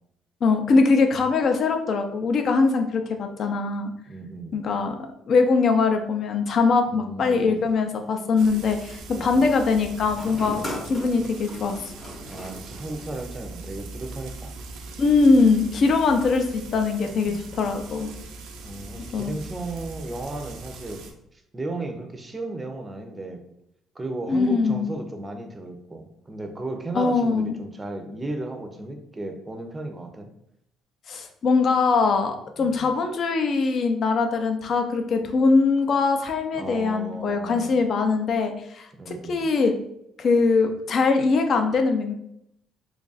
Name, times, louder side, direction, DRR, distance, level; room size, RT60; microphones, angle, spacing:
voice 1, 0.4-3.9 4.5-5.0 5.3-11.9 15.0-18.1 19.1-19.3 24.3-24.9 26.9-27.6 31.1-39.7 40.2-42.1, left 4 dB, 45° left, 5 dB, 0.5 m, -22 dB
voice 2, 4.1-4.6 6.9-7.6 9.1-9.5 12.3-14.5 17.0-17.4 18.6-21.1 21.3-23.5 23.9-30.3 32.6-32.9 36.5-37.8 39.0-39.4, right 2 dB, 20° right, 4 dB, 0.6 m, -35 dB
sound 1, 7.2-8.5 9.9-13.4, equal, 25° left, 0.8 m, -39 dB
Frying (food), 8.4-21.1, right 3 dB, 85° right, 0.5 m, -41 dB
3.1 x 2.4 x 3.9 m, 0.76 s
cardioid pair, 125°, 0 cm